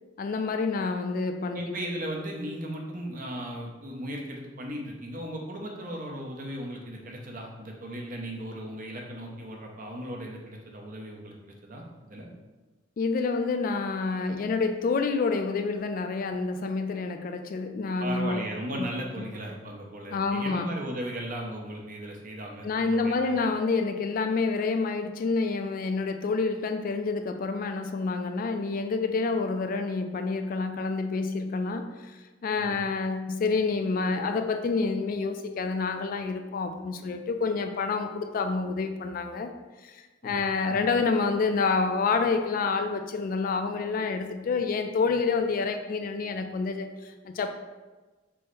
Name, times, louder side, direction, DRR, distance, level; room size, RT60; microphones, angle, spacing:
voice 1, 0.2-1.7 13.0-18.4 18.8-18.9 19.2-19.3 20.1-20.7 22.6-39.5 39.8-47.5, left 4 dB, 50° left, 7 dB, 0.3 m, -28 dB
voice 2, 1.5-12.3 18.0-23.4 32.6-32.8 40.2-40.8, right 1 dB, 45° right, 0 dB, 0.7 m, -37 dB
4.6 x 2.1 x 4.6 m, 1.2 s
head